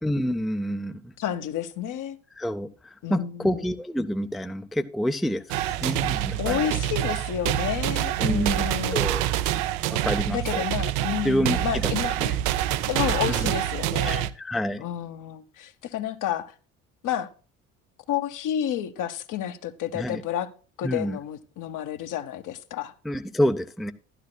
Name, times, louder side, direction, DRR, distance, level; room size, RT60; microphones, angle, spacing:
voice 1, 0.0-1.1 2.4-6.7 8.2-9.3 9.9-10.6 11.2-11.9 13.3-13.5 14.1-14.8 19.9-20.2 20.8-21.2 23.0-23.9, equal, ahead, 0.5 m, -28 dB
voice 2, 1.2-2.2 3.0-3.7 6.4-9.1 10.3-12.4 12.9-14.3 14.8-16.5 17.0-17.3 18.1-20.5 20.8-22.9, left 10 dB, 55° left, 1.0 m, -30 dB
sound 1, 5.5-14.3, right 13 dB, 70° right, 0.6 m, -26 dB
12.0 x 11.5 x 2.2 m
hypercardioid pair, 65°, 38 cm